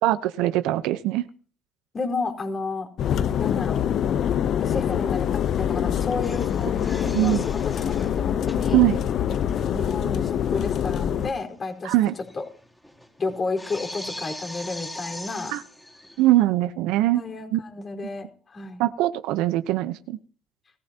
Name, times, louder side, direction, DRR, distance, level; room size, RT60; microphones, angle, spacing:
voice 1, 0.0-1.2 7.1-7.4 8.7-9.0 11.8-12.1 15.5-15.6 16.2-17.2 17.5-17.6 18.8-20.2, right 15 dB, 80° right, 11 dB, 0.9 m, -21 dB
voice 2, 1.9-2.9 3.4-3.8 4.6-8.9 9.7-11.9 12.3-12.4 13.2-15.5 17.1-18.8, left 3 dB, 35° left, 2 dB, 4.5 m, -32 dB
sound 1, 3.0-11.3, left 9 dB, 55° left, 0.8 m, -25 dB
sound 2, 5.2-5.4 5.7-10.3 10.6-10.7 11.2-11.3 11.6-16.4, left 1 dB, 5° left, 4.0 m, -41 dB
22.0 x 15.5 x 2.9 m, 0.43 s
cardioid pair, 100°, 0 cm